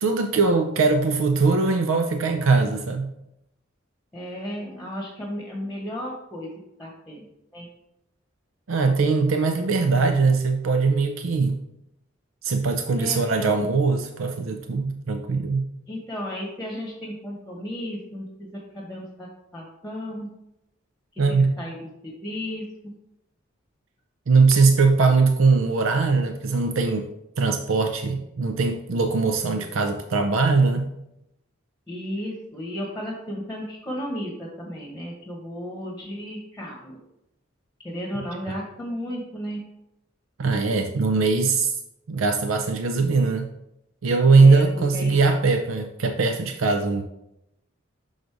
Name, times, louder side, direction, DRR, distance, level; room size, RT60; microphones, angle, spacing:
voice 1, 0.0-3.1 8.7-11.6 12.4-15.6 21.2-21.6 24.3-27.1 27.4-30.9 38.5-38.6 40.4-41.8 42.1-43.5 44.0-47.1, right 4 dB, 90° right, 5 dB, 0.5 m, -21 dB
voice 2, 4.1-6.5 6.8-7.3 7.5-7.7 13.0-13.5 15.9-20.3 21.1-21.9 22.2-22.9 31.9-37.0 37.8-39.6 44.4-44.7 44.9-45.2, equal, 5° left, -2 dB, 1.2 m, -34 dB
6.3 x 3.9 x 4.7 m, 0.84 s
head